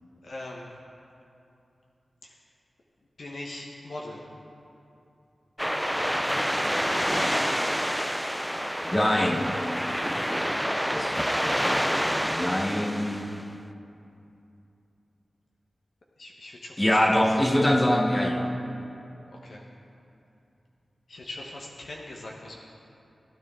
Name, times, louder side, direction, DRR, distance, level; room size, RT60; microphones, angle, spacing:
voice 1, 0.2-0.7 2.2-2.3 3.2-4.2 16.2-16.8 19.4-19.7 21.1-22.6, left 1 dB, 70° left, -2 dB, 1.1 m, -40 dB
sound 1, 5.6-13.4, equal, ahead, 0.4 m, -28 dB
voice 2, 8.9-9.6 10.9-13.3 16.8-18.5, left 1 dB, 20° left, 3 dB, 1.0 m, -24 dB
16.0 x 9.6 x 3.7 m, 2.7 s
wide cardioid pair, 80°, 0 cm